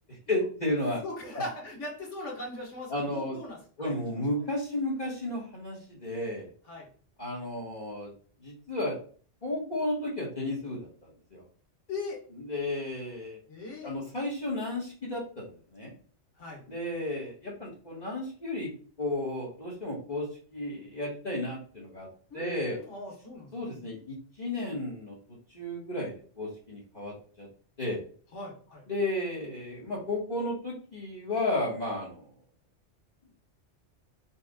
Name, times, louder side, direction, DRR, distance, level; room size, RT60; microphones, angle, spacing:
voice 1, 0.1-1.0 1.3-1.4 2.9-3.4 3.8-6.5 7.2-8.1 8.4-9.0 9.4-11.4 12.5-13.4 13.8-15.9 16.7-18.7 19.0-22.1 22.3-22.8 23.5-25.2 25.5-27.5 27.8-28.0 28.9-32.3, left 1 dB, 40° left, -4 dB, 1.3 m, -33 dB
voice 2, 1.0-4.4 6.6-6.9 11.9-12.2 13.5-14.0 16.4-16.6 22.3-23.9 28.3-28.8, left 2 dB, 85° left, -1 dB, 1.9 m, -40 dB
4.4 x 2.4 x 4.8 m, 0.43 s
omnidirectional pair, 1.2 m